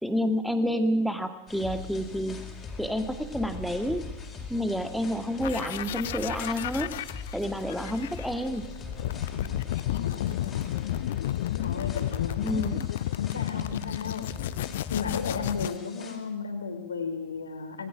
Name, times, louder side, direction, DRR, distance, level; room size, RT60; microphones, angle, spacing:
voice 1, 0.0-2.5 2.8-4.0 4.5-6.9 7.3-8.7 12.4-12.9, equal, ahead, 8 dB, 2.2 m, -29 dB
sound 1, 1.5-16.2, left 4 dB, 20° left, 4.7 m, -41 dB
sound 2, 5.4-15.8, left 13 dB, 55° left, 0.7 m, -32 dB
voice 2, 10.0-10.7 11.6-12.7 13.2-14.3 14.9-17.9, left 5 dB, 70° left, 7 dB, 3.4 m, -34 dB
26.0 x 20.0 x 6.0 m, 0.94 s
figure-of-eight pair, 90°, 0 cm